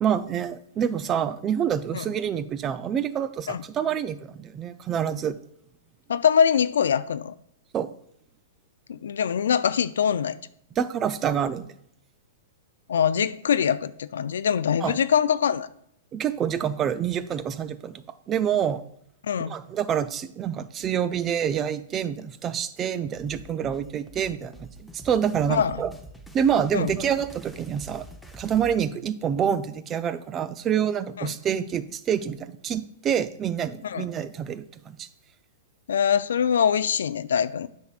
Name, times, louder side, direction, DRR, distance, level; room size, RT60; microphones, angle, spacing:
voice 1, 0.0-5.4 7.7-7.9 10.8-11.7 14.8-15.0 16.1-18.8 19.4-25.9 26.3-28.0 28.3-35.1, right 8 dB, 25° right, 0.4 m, -27 dB
voice 2, 6.1-7.3 8.9-10.4 12.9-15.7 19.2-19.6 25.5-25.8 26.7-26.9 31.2-31.3 33.8-34.0 35.9-37.7, left 8 dB, 75° left, 0.3 m, -23 dB
sound 1, 23.1-28.8, right 2 dB, ahead, 0.8 m, -45 dB
9.3 x 6.1 x 2.4 m
hypercardioid pair, 115°, 0 cm